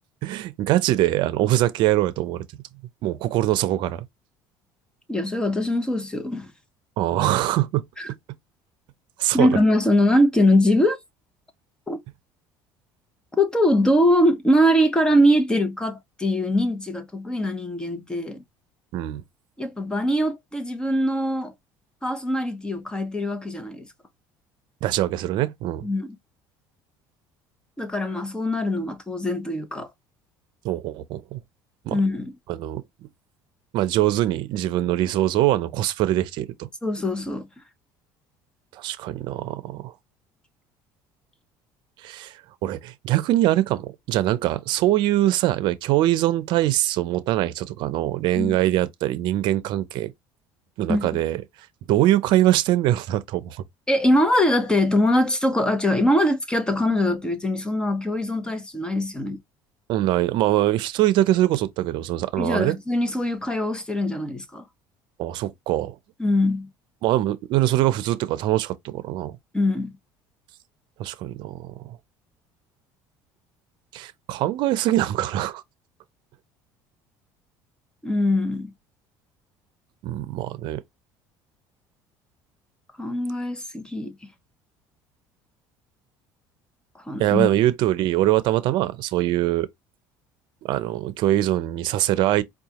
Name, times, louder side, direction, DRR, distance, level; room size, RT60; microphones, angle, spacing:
voice 1, 0.2-2.4 3.0-4.1 7.0-7.8 9.2-9.5 18.9-19.2 24.8-25.9 30.6-31.4 31.9-32.0 32.5-32.8 33.7-36.7 38.7-39.9 42.0-50.1 50.8-51.4 51.9-53.6 59.9-62.8 65.2-66.0 67.0-69.4 71.0-72.0 73.9-75.6 80.0-80.8 87.2-89.7 90.6-92.4, right 14 dB, 65° right, 0.6 m, -23 dB
voice 2, 5.1-6.5 8.0-8.1 9.3-11.0 11.9-12.0 13.4-18.4 19.6-21.5 22.0-23.9 25.8-26.2 27.8-29.9 31.9-32.3 36.8-37.5 48.3-48.6 50.9-51.2 53.9-59.4 62.4-64.7 66.2-66.7 69.5-70.0 78.0-78.7 83.0-84.3 86.9-87.5, left 1 dB, 10° left, 0.9 m, -22 dB
4.7 x 2.4 x 2.9 m
cardioid pair, 115°, 8 cm